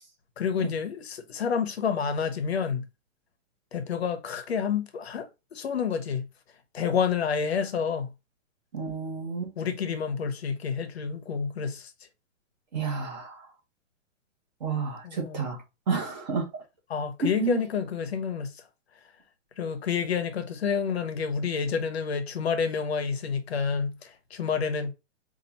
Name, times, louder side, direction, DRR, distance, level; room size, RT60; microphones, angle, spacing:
voice 1, 0.4-2.8 3.7-6.2 6.7-8.1 9.6-11.9 15.0-15.5 16.9-18.6 19.6-24.9, left 6 dB, 55° left, 0.8 m, -29 dB
voice 2, 8.7-9.5 12.7-13.5 14.6-16.5 17.2-17.6, right 5 dB, 35° right, 1.4 m, -30 dB
5.3 x 2.6 x 2.7 m
hypercardioid pair, 180°, 38 cm